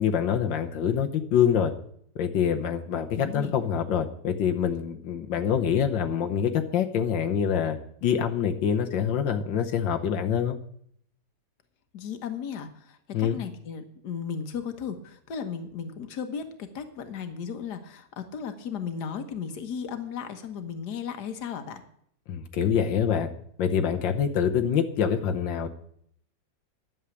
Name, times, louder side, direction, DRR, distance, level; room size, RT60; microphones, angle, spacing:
voice 1, 0.0-1.7 2.2-10.6 13.1-13.4 22.3-23.3 23.6-25.7, left 8 dB, 90° left, 5 dB, 1.7 m, -25 dB
voice 2, 3.1-3.5 11.9-21.8, left 7 dB, 65° left, 8 dB, 1.7 m, -35 dB
11.0 x 7.3 x 8.4 m, 0.67 s
omnidirectional pair, 2.0 m